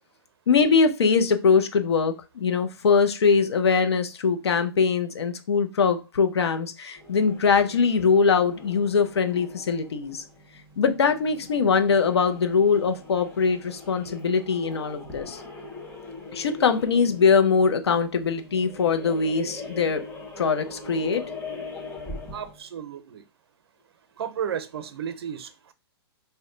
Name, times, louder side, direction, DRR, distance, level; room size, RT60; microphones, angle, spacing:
voice 1, 0.5-10.2 10.8-15.4 16.3-20.0 20.4-21.2, left 5 dB, 80° left, 0.6 m, -22 dB
sound 1, 7.0-22.6, left 3 dB, 15° left, 1.0 m, -41 dB
voice 2, 22.3-23.2 24.2-25.7, right 8 dB, 70° right, 0.6 m, -33 dB
2.7 x 2.2 x 3.7 m
hypercardioid pair, 130°, 13 cm